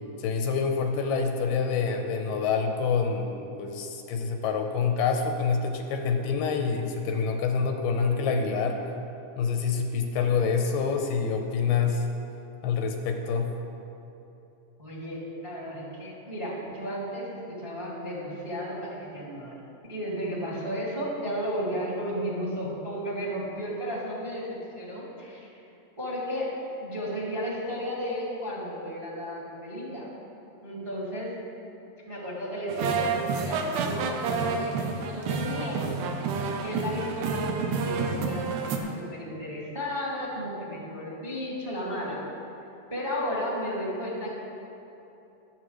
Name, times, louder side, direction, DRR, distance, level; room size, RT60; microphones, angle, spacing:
voice 1, 0.2-8.8 9.4-12.1 12.6-13.5, left 5 dB, 80° left, 4 dB, 2.4 m, -27 dB
voice 2, 14.8-19.6 19.9-25.5 26.0-26.5 26.8-30.1 30.6-31.3 32.1-35.9 36.6-42.2 42.9-44.3, equal, 10° right, -6 dB, 1.8 m, -33 dB
sound 1, 32.7-38.8, right 4 dB, 75° right, 2.2 m, -29 dB
22.0 x 7.9 x 3.2 m, 2.9 s
omnidirectional pair, 4.0 m